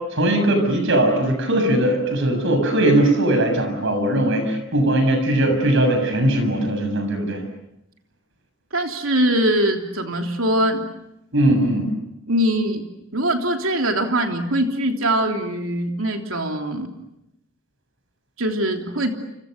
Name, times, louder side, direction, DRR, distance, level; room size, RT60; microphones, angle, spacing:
voice 1, 0.1-7.4 11.3-11.9, right 1 dB, 65° right, 6 dB, 7.3 m, -19 dB
voice 2, 8.7-10.9 12.3-12.8 13.1-16.9 18.4-19.2, right 1 dB, 85° right, 4 dB, 3.3 m, -22 dB
30.0 x 29.5 x 6.7 m, 0.85 s
head